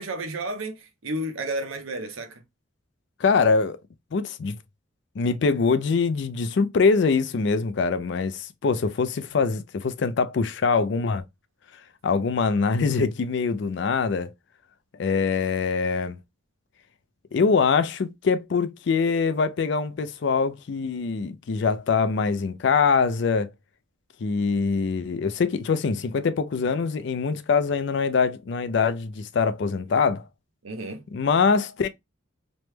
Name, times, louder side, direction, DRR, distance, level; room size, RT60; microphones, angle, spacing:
voice 1, 0.0-2.4 30.6-31.0, right 1 dB, 80° right, 0.7 m, -32 dB
voice 2, 3.2-3.8 4.1-4.6 5.2-11.2 12.0-14.3 15.0-16.2 17.3-23.5 24.2-30.2 31.1-31.9, left 5 dB, 55° left, 0.4 m, -23 dB
3.1 x 2.1 x 3.1 m
head